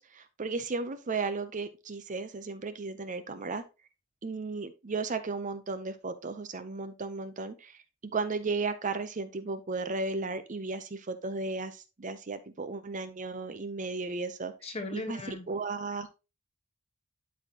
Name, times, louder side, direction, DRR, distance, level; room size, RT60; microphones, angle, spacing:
voice 1, 0.0-3.6 4.2-7.8 8.1-16.1, right 3 dB, 35° right, 0.6 m, -35 dB
voice 2, 14.6-15.5, left 2 dB, 25° left, 1.2 m, -37 dB
11.5 x 4.3 x 2.8 m
head